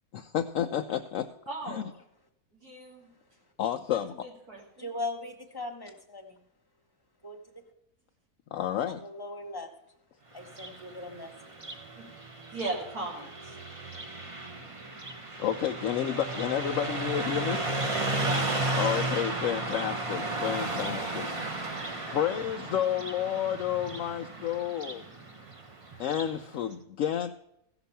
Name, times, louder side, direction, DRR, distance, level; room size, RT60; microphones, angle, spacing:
voice 1, 0.1-1.3 1.7-1.8 3.6-4.3 8.5-9.0 15.4-17.6 18.8-21.3 22.1-25.0 26.0-27.4, left 10 dB, 70° left, 6 dB, 0.8 m, -30 dB
voice 2, 1.5-1.8 2.5-3.1 3.9-4.9 12.0-12.1 12.5-13.6 18.2-18.5, right 2 dB, 75° right, -4 dB, 3.2 m, -38 dB
voice 3, 4.8-6.4 7.2-7.4 8.9-9.7 10.3-11.6, left 2 dB, 15° left, 4 dB, 1.1 m, -39 dB
Car passing by, 10.4-26.4, right 2 dB, 25° right, 0.9 m, -34 dB
15.5 x 5.9 x 5.6 m, 0.79 s
omnidirectional pair, 1.6 m